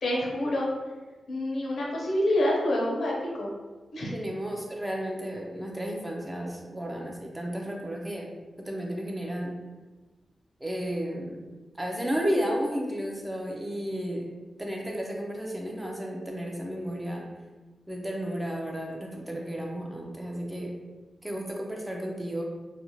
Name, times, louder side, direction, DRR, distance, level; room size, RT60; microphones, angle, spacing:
voice 1, 0.0-0.7 1.3-3.5 3.9-4.1, left 1 dB, 70° left, -3 dB, 0.7 m, -27 dB
voice 2, 4.1-8.3 8.6-9.5 10.6-11.4 11.8-14.3 14.6-17.2 17.9-20.7 21.2-22.4, equal, 10° right, -1 dB, 0.4 m, -33 dB
2.5 x 2.0 x 2.9 m, 1.2 s
wide cardioid pair, 115°, 0 cm